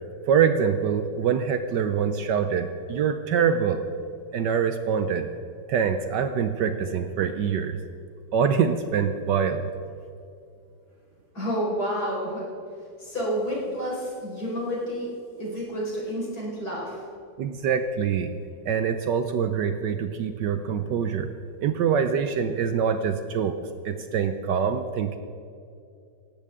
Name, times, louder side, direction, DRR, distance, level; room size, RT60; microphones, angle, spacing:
voice 1, 0.3-3.8 4.3-5.3 5.7-7.8 8.3-9.7 17.4-18.3 18.6-21.3 21.6-23.6 23.8-25.2, right 7 dB, 70° right, 9 dB, 1.3 m, -24 dB
voice 2, 11.3-12.5 13.0-15.1 15.4-17.0, equal, 50° left, -5 dB, 5.4 m, -29 dB
18.5 x 15.5 x 3.7 m, 2.5 s
omnidirectional pair, 2.1 m